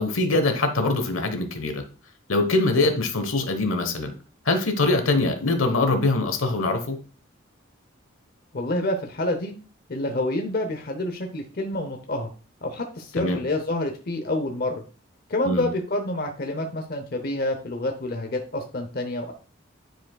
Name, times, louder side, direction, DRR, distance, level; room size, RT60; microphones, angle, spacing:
voice 1, 0.0-1.8 2.3-4.1 4.5-7.0 13.2-13.4 15.4-15.7, left 2 dB, 85° left, 7 dB, 1.1 m, -23 dB
voice 2, 8.5-9.5 9.9-12.3 12.6-14.8 15.3-19.3, left 1 dB, 50° left, 4 dB, 0.7 m, -28 dB
10.0 x 4.7 x 2.3 m, 0.37 s
head